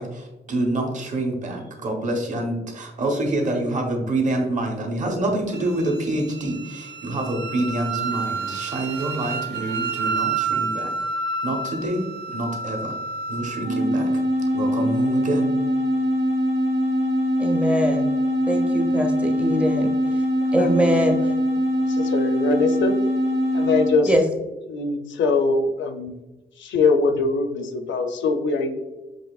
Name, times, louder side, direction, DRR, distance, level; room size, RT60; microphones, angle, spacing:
voice 1, 0.0-10.9 11.4-13.0 13.3-14.2 14.5-15.5, right 2 dB, 40° right, 1 dB, 1.0 m, -27 dB
Wind instrument woodwind instrument, 5.5-13.7, right 4 dB, 65° right, 0.6 m, -29 dB
sound 1, 13.6-24.0, equal, 85° right, 1.3 m, -22 dB
voice 2, 17.4-18.1 18.5-19.9 20.5-21.2 24.1-24.2, equal, 5° right, 3 dB, 0.6 m, -22 dB
voice 3, 21.9-23.0 23.5-24.1 24.7-26.2 26.6-28.8, left 4 dB, 80° left, 7 dB, 0.6 m, -22 dB
7.3 x 2.9 x 2.4 m, 1.1 s
wide cardioid pair, 145°, 19 cm